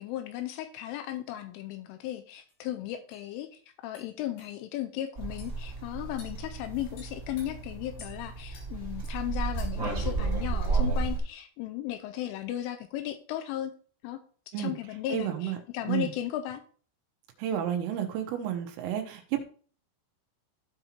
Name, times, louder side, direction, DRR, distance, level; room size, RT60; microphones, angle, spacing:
voice 1, 0.0-13.7 14.0-14.2 14.5-16.6, left 13 dB, 85° left, 8 dB, 3.0 m, -36 dB
sound 1, 2.5-2.6 3.1-3.2 3.9-4.1 4.4-4.5 5.4-5.5 6.2-6.4 7.0-7.5 8.0-8.2 8.5-8.7 9.0-9.2 9.6-9.9, left 4 dB, 55° left, 4.5 m, -51 dB
sound 2, 5.2-11.2, right 4 dB, 25° right, 1.8 m, -32 dB
voice 2, 15.1-15.6 15.9-16.1 17.4-19.4, right 10 dB, 85° right, 3 dB, 3.5 m, -31 dB
15.5 x 5.3 x 2.9 m, 0.44 s
omnidirectional pair, 5.8 m